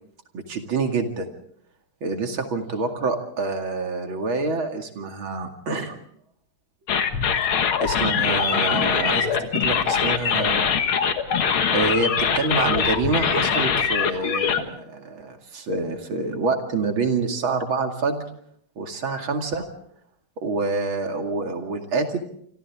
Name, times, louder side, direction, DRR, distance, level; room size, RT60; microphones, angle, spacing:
voice 1, 0.3-1.3 2.0-6.0 7.8-10.7 11.7-18.2 18.8-19.6 20.4-22.2, right 3 dB, 70° right, 4 dB, 3.1 m, -26 dB
sound 1, 6.9-14.6, left 7 dB, 75° left, 2.3 m, -22 dB
28.0 x 25.5 x 3.6 m, 0.66 s
omnidirectional pair, 2.3 m